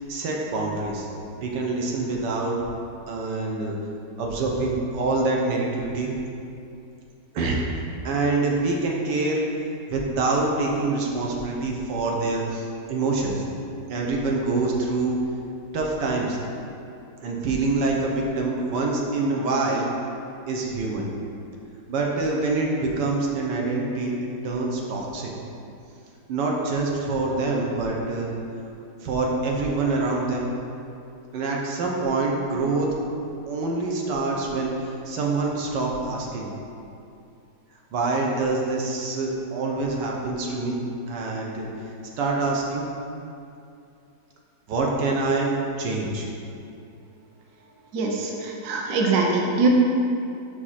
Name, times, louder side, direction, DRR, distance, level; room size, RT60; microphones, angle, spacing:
voice 1, 0.1-1.1 1.4-2.7 3.1-3.7 4.2-6.1 7.3-7.6 8.0-9.4 9.9-13.3 13.9-15.2 15.7-16.4 17.2-19.9 20.5-21.1 21.9-24.1 24.4-25.3 26.3-28.3 29.0-30.5 31.3-32.9 33.5-36.5 37.9-40.8 41.1-41.7 42.2-42.9 44.7-46.3, right 3 dB, 80° right, -1 dB, 1.5 m, -25 dB
voice 2, 47.9-49.7, right 4 dB, 60° right, 0 dB, 1.0 m, -23 dB
5.7 x 5.1 x 4.1 m, 2.7 s
omnidirectional pair, 1.8 m